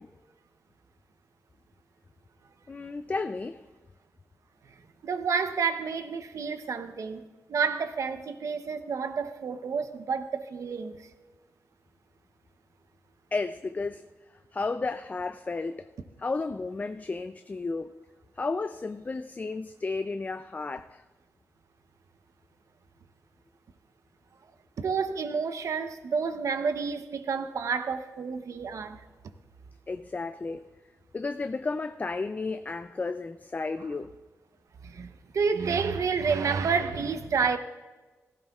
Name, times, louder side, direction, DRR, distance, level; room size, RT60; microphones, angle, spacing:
voice 1, 2.7-3.6 13.3-14.0 14.5-15.9 16.2-18.0 18.4-21.0 29.9-30.7 31.1-34.1, left 3 dB, 30° left, 0.3 m, -33 dB
voice 2, 5.0-11.0 24.8-29.0 34.8-37.6, right 5 dB, 75° right, 0.8 m, -29 dB
16.5 x 14.5 x 2.4 m
wide cardioid pair, 95°, 6 cm